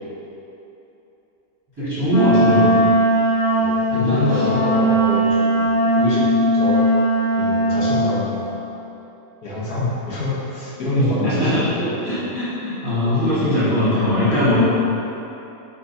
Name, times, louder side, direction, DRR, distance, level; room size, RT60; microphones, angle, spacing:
voice 1, 1.8-2.7 3.9-4.2 10.9-14.6, left 1 dB, 15° right, -14 dB, 1.2 m, -20 dB
Wind instrument woodwind instrument, 2.1-8.2, right 1 dB, 40° left, 0.7 m, -18 dB
voice 2, 3.5-6.3 6.5-6.8 7.3-8.4 9.4-12.3 13.0-13.4, left 2 dB, 70° left, -9 dB, 1.4 m, -26 dB
4.5 x 3.9 x 2.7 m, 3.0 s
omnidirectional pair, 1.7 m